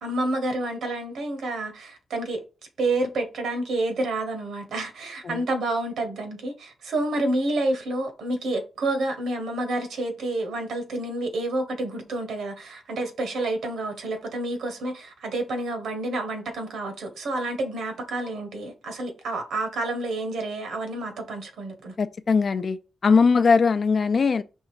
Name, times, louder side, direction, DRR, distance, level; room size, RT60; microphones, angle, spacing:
voice 1, 0.0-2.4 2.8-21.9, right 2 dB, 90° right, 1.6 m, -29 dB
voice 2, 22.0-22.8 23.0-24.4, left 5 dB, 40° left, 0.5 m, -20 dB
5.4 x 3.5 x 4.9 m
wide cardioid pair, 170°, 0 cm